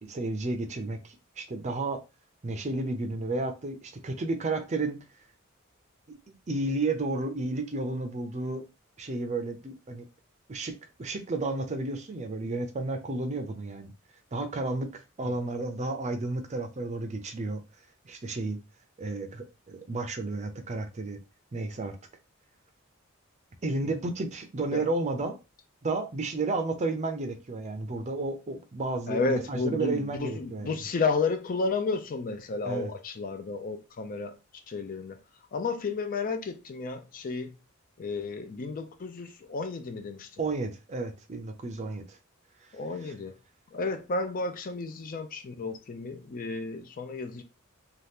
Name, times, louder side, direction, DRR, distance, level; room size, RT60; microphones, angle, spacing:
voice 1, 0.0-1.0 1.4-2.0 2.4-5.0 6.1-6.2 6.5-8.6 9.0-10.1 10.5-13.9 14.3-17.6 18.1-18.6 19.0-21.2 21.5-22.0 23.6-25.4 25.8-30.8 32.6-32.9 40.4-42.2, right 2 dB, 35° right, 0.5 m, -32 dB
voice 2, 29.1-34.4 34.7-35.2 35.5-37.6 38.0-40.3 42.7-43.4 43.7-47.4, left 4 dB, 40° left, 0.4 m, -32 dB
2.8 x 2.3 x 3.4 m
head